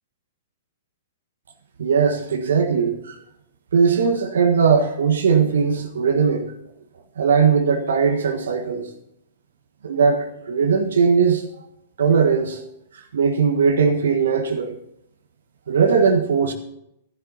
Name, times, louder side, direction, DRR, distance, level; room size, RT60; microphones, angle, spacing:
voice 1, 1.8-3.2 3.7-6.5 7.2-8.9 9.8-11.7 12.0-12.6 12.9-14.7 15.7-16.5, right 6 dB, 70° right, 1.5 m, -19 dB
14.0 x 11.0 x 4.1 m
figure-of-eight pair, 110°, 0 cm